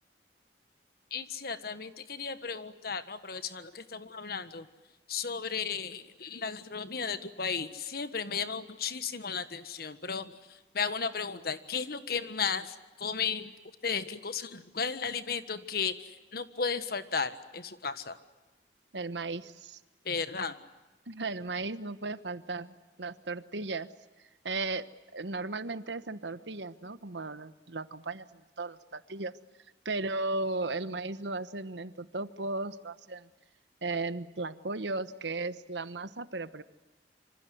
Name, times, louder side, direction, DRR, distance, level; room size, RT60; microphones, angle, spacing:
voice 1, 1.1-4.7 5.1-13.5 13.8-18.2 20.0-20.5, left 5 dB, 60° left, 11 dB, 1.5 m, -34 dB
voice 2, 18.9-19.8 21.1-23.9 24.4-29.3 29.8-33.3 33.8-36.6, right 3 dB, 85° right, 12 dB, 1.2 m, -36 dB
27.0 x 25.5 x 7.9 m, 1.1 s
head